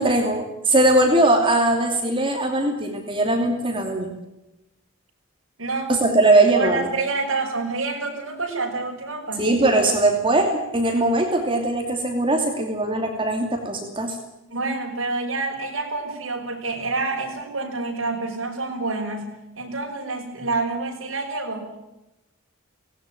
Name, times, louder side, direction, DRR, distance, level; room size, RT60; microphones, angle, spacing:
voice 1, 0.0-4.1 5.9-6.9 9.4-14.2, right 2 dB, 25° right, 3 dB, 2.8 m, -20 dB
voice 2, 5.6-5.9 6.5-9.5 14.5-21.8, right 3 dB, 65° right, 1 dB, 6.0 m, -28 dB
18.5 x 18.0 x 9.1 m, 0.94 s
head